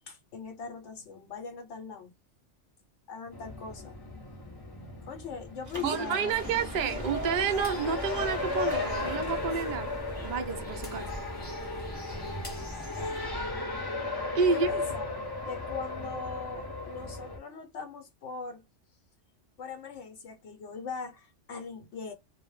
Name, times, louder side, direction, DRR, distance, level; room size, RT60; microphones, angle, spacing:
voice 1, 0.1-2.1 3.1-4.0 5.1-6.4 14.5-18.6 19.6-22.1, left 5 dB, 75° left, 0.9 m, -41 dB
Race car auto racing, 3.3-17.4, left 2 dB, 30° left, 0.5 m, -36 dB
Mechanisms, 5.7-10.8, right 2 dB, 20° right, 0.6 m, -42 dB
voice 2, 5.8-9.9 10.2-11.1 14.3-14.7, right 6 dB, 55° right, 0.5 m, -29 dB
sound 1, 6.3-13.3, equal, 10° left, 0.9 m, -43 dB
2.1 x 2.0 x 3.0 m
omnidirectional pair, 1.2 m